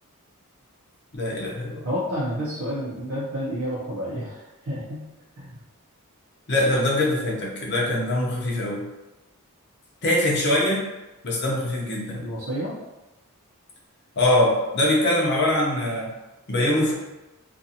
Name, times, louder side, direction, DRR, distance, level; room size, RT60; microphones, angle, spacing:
voice 1, 1.1-1.8 6.5-8.9 10.0-10.8 11.2-12.2 14.2-16.1 16.5-16.9, left 1 dB, 50° left, -3 dB, 0.7 m, -23 dB
voice 2, 1.8-5.0 5.4-5.6 12.2-12.8, equal, 70° right, -7 dB, 0.6 m, -30 dB
2.6 x 2.5 x 2.7 m, 1.0 s
head